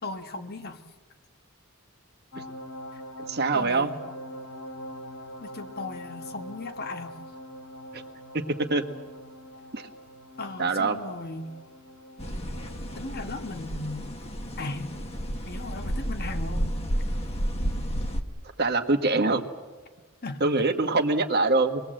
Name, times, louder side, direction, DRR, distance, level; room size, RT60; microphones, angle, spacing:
voice 1, 0.0-0.8 2.9-3.0 3.5-4.0 5.4-7.2 10.4-11.5 12.9-14.1 14.6-14.9 15.4-17.1 20.2-20.4, left 2 dB, 45° left, 7 dB, 1.5 m, -37 dB
sound 1, 2.3-17.9 18.2-18.4, equal, 65° left, 4.7 m, -44 dB
voice 2, 3.3-3.9 7.9-8.0 8.3-8.4 8.7-8.8 9.7-9.9 10.6-11.0 18.6-19.4 20.4-21.8, right 3 dB, 50° right, 6 dB, 1.5 m, -24 dB
sound 2, 12.2-18.2, equal, 30° left, 1.6 m, -31 dB
26.5 x 20.5 x 7.8 m, 1.3 s
head